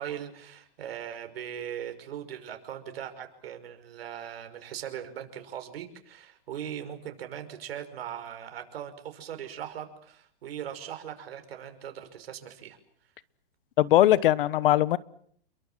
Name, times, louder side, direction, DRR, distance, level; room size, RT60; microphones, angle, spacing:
voice 1, 0.0-12.8, right 9 dB, 70° right, 7 dB, 5.7 m, -39 dB
voice 2, 13.8-15.0, left 14 dB, 60° left, 20 dB, 1.1 m, -20 dB
30.0 x 23.0 x 7.6 m, 0.64 s
hypercardioid pair, 150°, 31 cm